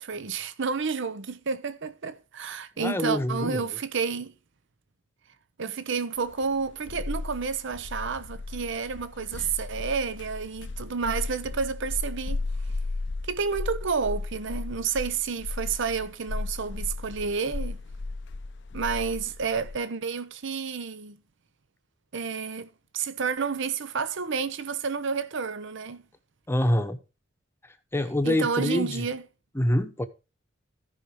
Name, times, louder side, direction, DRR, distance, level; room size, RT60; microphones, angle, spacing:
voice 1, 0.0-4.3 5.6-12.4 13.3-17.8 18.7-21.2 22.1-26.0 28.2-29.2, right 5 dB, 65° right, 0.8 m, -30 dB
voice 2, 2.8-3.7 26.5-27.0 27.9-29.1 29.5-30.1, left 1 dB, 10° left, 0.9 m, -25 dB
sound 1, 6.3-19.8, left 3 dB, 65° left, 0.6 m, -35 dB
14.0 x 5.5 x 4.8 m
head